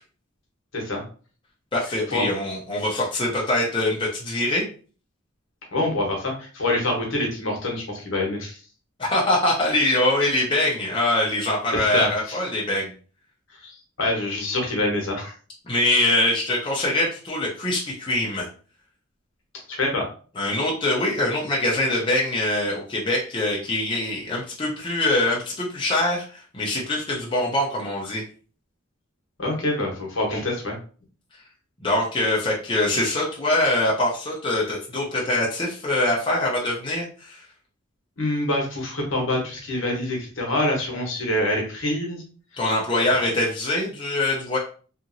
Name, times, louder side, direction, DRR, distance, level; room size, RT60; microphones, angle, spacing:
voice 1, 1.7-4.6 9.0-12.9 15.7-18.5 20.4-28.2 31.8-37.4 42.5-44.6, left 1 dB, 25° left, -4 dB, 0.6 m, -23 dB
voice 2, 5.7-8.6 11.9-12.4 13.6-15.3 19.7-20.1 29.4-30.7 38.2-42.2, left 1 dB, 70° left, 0 dB, 1.0 m, -25 dB
2.9 x 2.5 x 2.6 m, 0.39 s
head